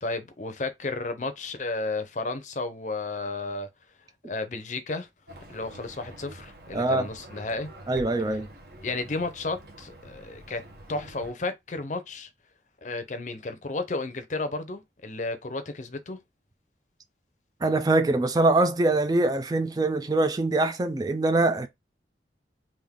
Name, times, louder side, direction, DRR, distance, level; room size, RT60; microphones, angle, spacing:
voice 1, 0.0-3.7 4.3-5.1 5.5-7.7 8.3-8.4 8.8-10.6 10.9-12.3 12.8-16.2, left 3 dB, 45° left, 0.6 m, -33 dB
Livestock farm animals working animals, 5.3-11.3, right 1 dB, 60° right, 1.1 m, -47 dB
voice 2, 6.7-7.1 7.9-8.5 17.6-21.7, right 2 dB, 20° right, 0.3 m, -23 dB
3.5 x 2.6 x 3.6 m
head